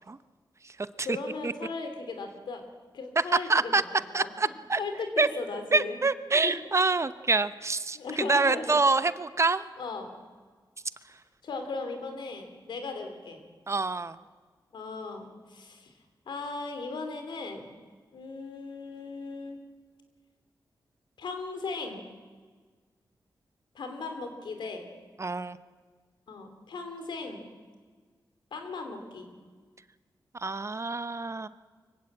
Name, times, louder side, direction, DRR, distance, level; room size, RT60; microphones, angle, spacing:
voice 1, 1.0-2.7 2.9-3.8 4.2-6.0 6.4-6.6 7.9-8.8 9.8-10.1 11.4-13.4 14.7-15.9 16.3-17.7 18.1-19.6 21.2-22.1 23.7-24.9 26.3-27.5 28.5-29.3, left 3 dB, 85° left, 6 dB, 3.1 m, -37 dB
voice 2, 3.5-3.8 4.1-4.8 5.2-5.3 5.7-9.6 13.7-14.2 25.2-25.6 30.4-31.5, right 3 dB, 40° right, 14 dB, 0.9 m, -26 dB
24.0 x 16.0 x 8.7 m, 1.5 s
cardioid pair, 55°, 8 cm